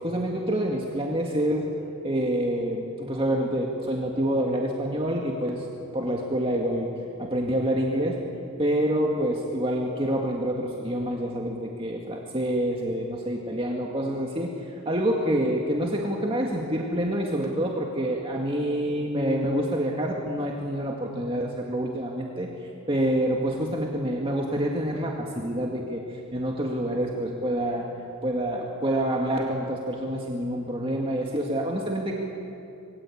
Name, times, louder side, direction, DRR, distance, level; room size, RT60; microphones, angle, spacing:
voice 1, 0.0-1.7 2.0-5.6 5.9-6.9 7.2-8.2 8.6-27.9 28.2-32.1, right 1 dB, 25° right, -1 dB, 2.0 m, -27 dB
27.5 x 21.5 x 8.7 m, 2.7 s
head